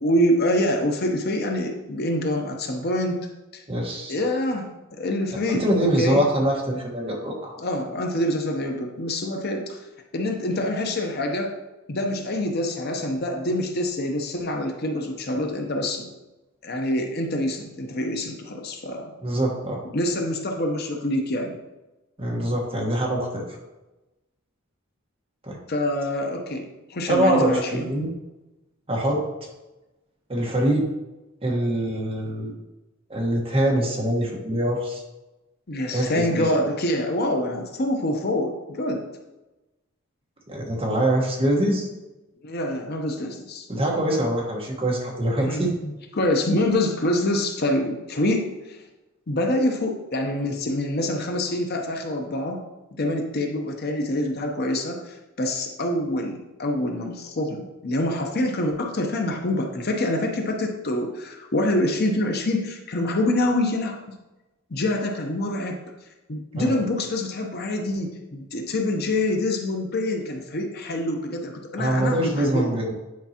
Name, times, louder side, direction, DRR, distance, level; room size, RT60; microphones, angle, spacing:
voice 1, 0.0-3.3 3.5-3.6 4.1-6.2 7.6-9.8 10.1-11.5 11.9-16.1 16.6-19.1 19.9-21.6 25.7-27.9 35.7-39.0 42.4-43.7 45.4-48.8 49.3-52.6 53.0-64.0 64.7-65.8 66.3-72.8, left 1 dB, 50° left, 3 dB, 0.7 m, -26 dB
voice 2, 3.7-4.2 5.5-7.5 19.2-19.8 22.2-23.4 25.4-25.6 27.1-28.1 28.9-29.2 30.3-30.8 31.4-32.5 33.1-35.0 35.9-36.5 40.5-41.9 43.7-45.7 66.5-66.7 71.8-72.9, right 1 dB, 25° right, -2 dB, 1.3 m, -24 dB
9.4 x 4.6 x 2.9 m, 1.0 s
head